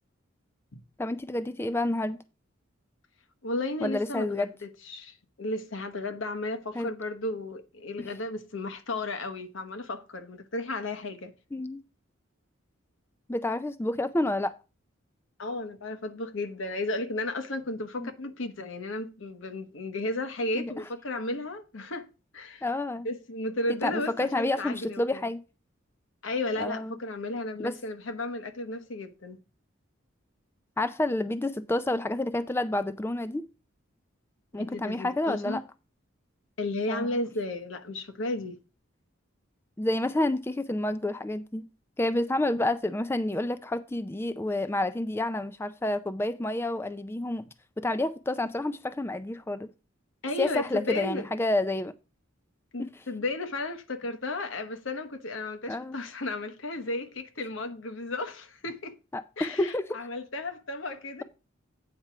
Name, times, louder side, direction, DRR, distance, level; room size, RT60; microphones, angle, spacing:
voice 1, 1.0-2.2 3.8-4.5 6.8-6.9 8.0-8.1 11.5-11.8 13.3-14.5 18.0-18.1 20.5-20.7 22.6-23.1 23.8-25.4 26.6-26.9 27.6-27.7 30.8-33.5 34.5-35.6 36.9-37.1 39.8-41.7 42.0-47.5 47.8-49.7 50.4-51.9 52.8-52.9 55.7-56.0 59.1-59.9, left 1 dB, 10° left, 0.4 m, -29 dB
voice 2, 3.4-11.3 15.4-22.1 22.3-22.6 23.0-25.2 26.2-29.4 34.5-35.6 36.6-38.6 50.2-51.3 52.7-58.9 59.4-61.2, left 2 dB, 75° left, 1.1 m, -34 dB
8.9 x 4.4 x 5.9 m
head